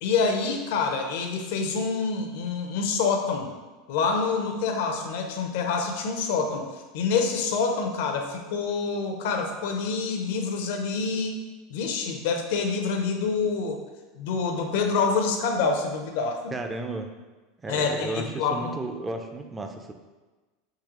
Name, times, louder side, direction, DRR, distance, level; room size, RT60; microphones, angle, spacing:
voice 1, 0.0-3.5 3.9-6.7 6.9-11.4 11.7-13.8 14.2-16.4 17.7-18.7, left 4 dB, 75° left, 4 dB, 0.5 m, -26 dB
voice 2, 16.5-17.1 17.6-19.9, right 2 dB, 15° right, 5 dB, 0.4 m, -33 dB
3.8 x 2.7 x 3.0 m, 1.2 s
supercardioid pair, 115°, 0 cm